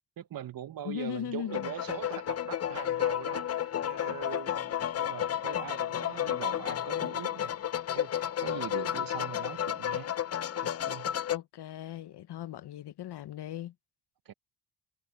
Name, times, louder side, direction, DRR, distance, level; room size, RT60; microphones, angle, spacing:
voice 1, 0.2-7.7 7.9-10.1 10.6-11.2 14.3-14.4, right 10 dB, 60° right, 0.8 m, -42 dB
voice 2, 0.8-1.7 11.3-13.7, left 11 dB, 75° left, 0.9 m, -38 dB
sound 1, 1.5-11.4, left 10 dB, 40° left, 0.5 m, -32 dB
cardioid pair, 100°, 40 cm